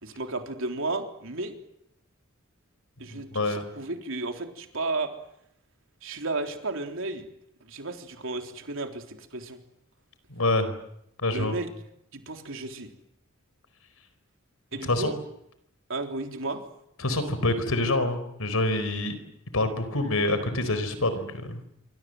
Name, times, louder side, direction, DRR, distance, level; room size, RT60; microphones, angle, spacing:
voice 1, 0.0-1.5 3.0-5.1 6.0-7.3 7.6-9.6 11.3-11.7 12.1-12.9 14.7-15.1 15.9-16.6, right 2 dB, 65° right, 4 dB, 3.7 m, -33 dB
voice 2, 3.1-3.6 10.3-10.7 11.2-11.5 14.8-15.1 17.0-19.2 19.5-21.6, left 2 dB, 90° left, 11 dB, 4.6 m, -26 dB
26.5 x 25.5 x 7.9 m, 0.77 s
head